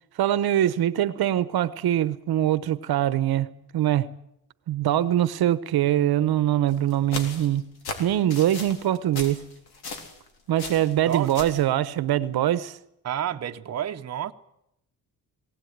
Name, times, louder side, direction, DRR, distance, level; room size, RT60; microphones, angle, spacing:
voice 1, 0.2-3.5 3.7-4.1 4.7-7.7 8.0-9.5 10.5-12.8, right 12 dB, 75° right, 1.0 m, -23 dB
sound 1, 6.7-10.3 10.6-11.6, left 4 dB, 85° left, 3.7 m, -37 dB
voice 2, 11.1-11.4 13.0-14.3, right 10 dB, 45° right, 0.9 m, -30 dB
20.0 x 17.5 x 9.4 m
cardioid pair, 135°, 37 cm